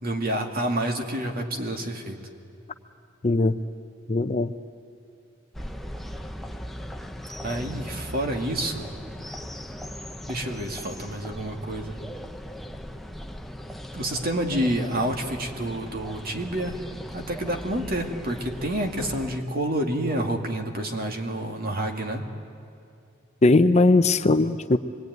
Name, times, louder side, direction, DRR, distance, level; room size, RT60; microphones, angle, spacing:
voice 1, 0.0-2.2 7.4-8.9 10.3-12.0 13.9-16.8 17.1-22.2, right 1 dB, 50° right, 3 dB, 2.2 m, -28 dB
voice 2, 3.2-3.6 4.1-4.5 23.4-24.8, left 2 dB, 35° left, 10 dB, 0.6 m, -19 dB
sound 1, 5.5-19.4, equal, ahead, 0.8 m, -38 dB
25.5 x 21.0 x 9.4 m, 2.5 s
head